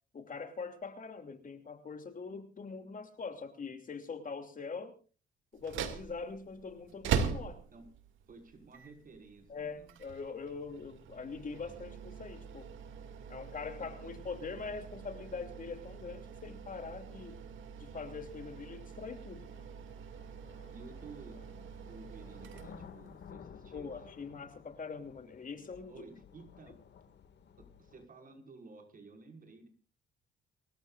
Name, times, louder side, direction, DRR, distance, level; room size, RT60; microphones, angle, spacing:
voice 1, 0.1-4.9 5.5-7.6 9.5-12.7 13.3-17.4 17.8-19.4 23.7-25.9, left 5 dB, 45° left, 7 dB, 2.9 m, -43 dB
sound 1, 5.5-23.3, right 7 dB, 80° right, 2.4 m, -42 dB
voice 2, 8.3-10.0 13.8-14.3 20.7-24.1 25.9-26.8 27.6-29.7, right 3 dB, 45° right, 3 dB, 5.7 m, -53 dB
sound 2, 17.5-17.6 18.5-28.0, left 7 dB, 60° left, 2.2 m, -56 dB
30.0 x 14.0 x 2.5 m, 0.37 s
cardioid pair, 90°, 20 cm